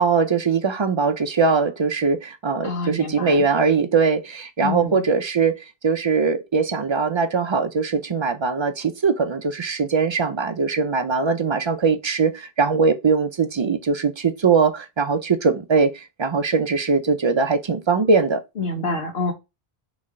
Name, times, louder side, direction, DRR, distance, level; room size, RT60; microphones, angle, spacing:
voice 1, 0.0-18.4, right 4 dB, 45° right, 0.4 m, -21 dB
voice 2, 2.6-3.5 4.6-5.0 18.6-19.3, left 2 dB, 75° left, 1.2 m, -27 dB
4.0 x 3.2 x 3.5 m
omnidirectional pair, 1.0 m